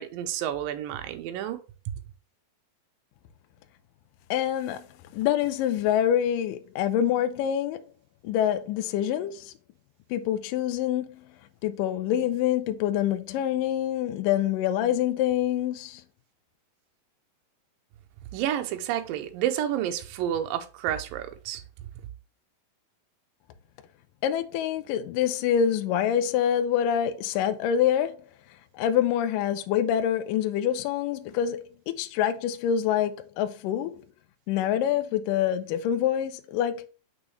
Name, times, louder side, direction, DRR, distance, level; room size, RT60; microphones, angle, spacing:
voice 1, 0.0-1.6 18.3-21.6, right 11 dB, 80° right, 2.4 m, -30 dB
voice 2, 4.3-4.9 5.1-7.8 8.2-9.5 10.1-11.3 11.6-16.0 24.2-28.2 28.7-34.0 34.5-36.9, left 10 dB, 75° left, 2.2 m, -26 dB
6.3 x 6.0 x 3.1 m
omnidirectional pair, 4.2 m